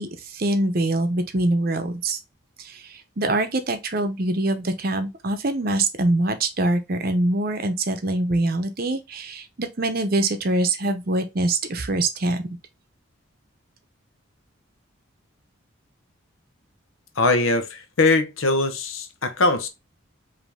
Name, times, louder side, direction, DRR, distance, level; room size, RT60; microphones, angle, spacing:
voice 1, 0.0-2.2 2.6-2.8 3.2-12.4, right 2 dB, 45° right, 0.7 m, -24 dB
voice 2, 17.2-19.7, left 3 dB, 85° left, 0.8 m, -21 dB
5.2 x 2.8 x 3.5 m
head